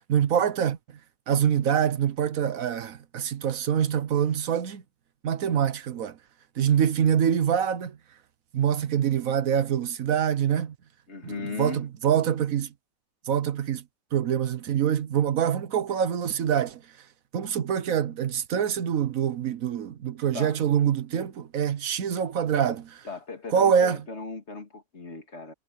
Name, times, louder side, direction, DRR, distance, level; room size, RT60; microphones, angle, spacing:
voice 1, 0.1-0.8 1.3-4.8 5.2-6.2 6.6-7.9 8.5-10.7 11.2-12.7 13.3-13.8 14.1-16.8 17.3-23.0 23.5-24.0, right 8 dB, 75° right, 1.3 m, -25 dB
voice 2, 11.1-11.8 20.3-20.6 23.0-25.5, left 4 dB, 50° left, 2.6 m, -37 dB
omnidirectional pair, 1.5 m